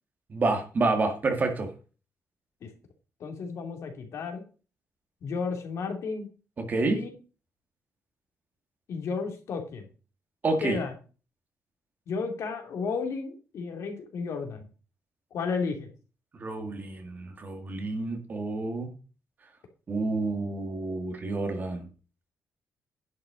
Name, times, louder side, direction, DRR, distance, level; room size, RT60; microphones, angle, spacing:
voice 1, 0.3-1.7 6.7-7.0 10.4-10.8 16.4-18.9 19.9-21.9, right 3 dB, 35° right, 5 dB, 2.1 m, -28 dB
voice 2, 3.2-4.4 5.2-6.3 6.9-7.1 8.9-9.8 10.6-11.0 12.1-14.7 15.3-15.9, left 5 dB, 65° left, 4 dB, 2.7 m, -33 dB
10.5 x 5.9 x 5.1 m, 0.35 s
cardioid pair, 150°, 5 cm